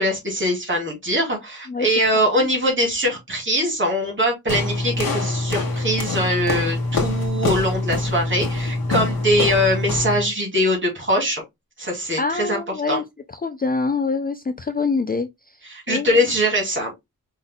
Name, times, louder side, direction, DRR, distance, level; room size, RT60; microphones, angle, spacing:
voice 1, 0.0-11.4 11.8-12.6 12.9-13.0 15.6-16.9, equal, 30° right, 2.8 m, -22 dB
sound 1, 4.5-10.3, left 2 dB, 70° left, 1.8 m, -24 dB
voice 2, 12.2-13.0 13.3-15.6 15.9-16.1, left 4 dB, 25° left, 0.4 m, -25 dB
5.3 x 3.8 x 2.3 m
wide cardioid pair, 115°, 36 cm